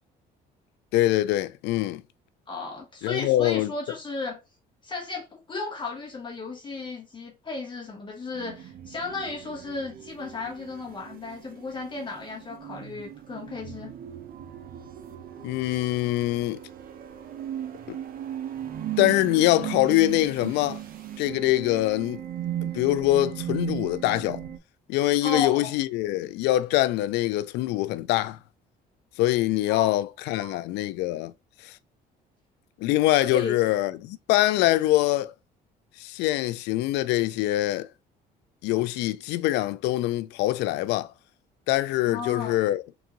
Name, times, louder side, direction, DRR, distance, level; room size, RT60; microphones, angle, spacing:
voice 1, 0.9-2.0 3.0-3.7 15.4-16.6 19.0-20.8 21.2-22.2 22.6-24.4 24.9-28.4 29.2-31.3 31.6-31.8 32.8-35.3 36.0-37.9 38.6-41.1 41.7-42.8, left 16 dB, 85° left, 0.4 m, -24 dB
voice 2, 2.5-4.4 4.8-13.9 25.2-25.7 29.7-29.9 30.3-30.6 33.2-33.6 42.0-42.6, left 3 dB, 30° left, 1.3 m, -34 dB
sound 1, 8.3-24.6, right 11 dB, 60° right, 0.7 m, -37 dB
3.9 x 3.5 x 2.9 m
cardioid pair, 110°, 17 cm